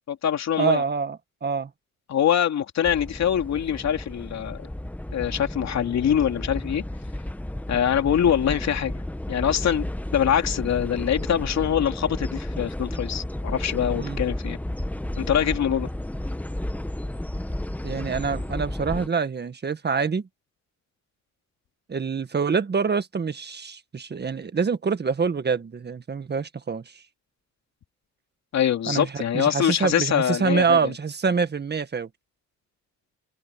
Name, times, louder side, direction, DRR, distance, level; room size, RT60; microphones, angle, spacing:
voice 1, 0.1-0.8 2.1-4.7 5.1-6.8 7.7-9.0 9.3-14.6 15.2-15.9 28.5-30.8, left 9 dB, 60° left, 3.0 m, -24 dB
voice 2, 0.6-1.7 14.0-14.2 17.8-20.3 21.9-27.0 28.9-32.1, right 5 dB, 35° right, 1.7 m, -26 dB
sound 1, 2.8-19.1, left 1 dB, 5° left, 1.3 m, -32 dB
cardioid pair, 90°, 30 cm